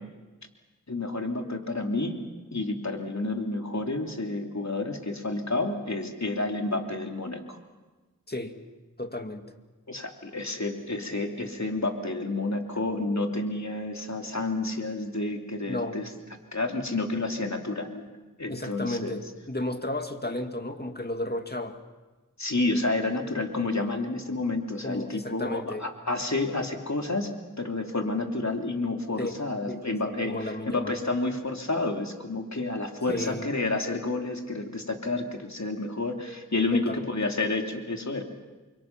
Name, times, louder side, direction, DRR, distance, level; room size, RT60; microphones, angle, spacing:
voice 1, 0.9-2.2 2.5-7.4 9.9-16.1 16.5-18.0 18.4-19.2 22.4-27.3 27.6-38.2, left 2 dB, 50° left, 3 dB, 3.0 m, -30 dB
voice 2, 8.3-8.6 9.0-9.5 15.7-16.0 18.5-21.8 24.8-25.8 29.2-29.3 29.7-31.0 33.1-33.5 36.7-37.1, left 1 dB, 30° left, 6 dB, 2.2 m, -33 dB
29.0 x 24.5 x 6.0 m, 1.2 s
wide cardioid pair, 40°, 34 cm